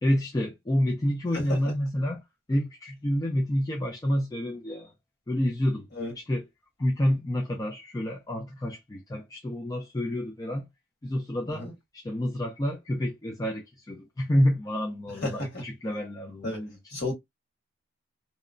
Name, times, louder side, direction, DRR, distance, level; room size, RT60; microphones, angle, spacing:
voice 1, 0.0-2.2 2.5-4.9 5.3-5.9 6.2-6.5 6.8-10.7 11.0-11.7 11.9-16.8, equal, 15° left, 0.3 m, -28 dB
voice 2, 15.1-15.6 16.4-17.1, left 2 dB, 45° left, 1.5 m, -33 dB
2.9 x 2.1 x 2.4 m
head